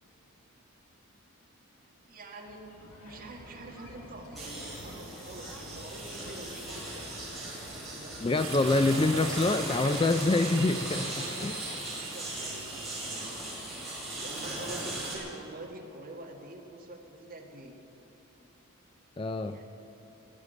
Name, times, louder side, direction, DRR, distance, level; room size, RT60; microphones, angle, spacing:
voice 1, 1.8-2.6 3.0-7.1 7.7-8.2 11.1-13.4 14.2-17.8 19.4-19.7, right 2 dB, 40° right, 0 dB, 1.9 m, -46 dB
sound 1, 2.5-8.3, left 1 dB, 75° left, 1.9 m, -49 dB
sound 2, 4.3-15.2, right 1 dB, ahead, 4.7 m, -39 dB
voice 2, 8.2-11.6 19.2-19.6, left 2 dB, 25° left, 9 dB, 0.3 m, -26 dB
sound 3, 8.4-13.9, right 4 dB, 70° right, 3.7 m, -41 dB
16.0 x 11.0 x 8.3 m, 3.0 s
head